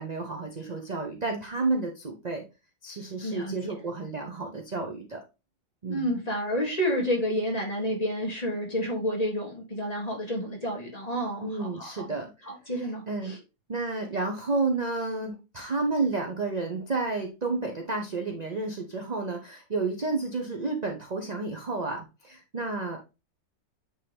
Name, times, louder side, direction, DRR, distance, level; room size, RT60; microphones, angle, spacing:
voice 1, 0.0-2.4 2.8-5.2 5.8-6.2 11.4-13.3 13.7-23.0, right 3 dB, 35° right, 3 dB, 0.7 m, -31 dB
voice 2, 3.2-3.7 5.9-12.1 12.5-13.4, equal, 20° left, -1 dB, 2.3 m, -30 dB
9.2 x 3.8 x 3.4 m, 0.28 s
omnidirectional pair, 1.9 m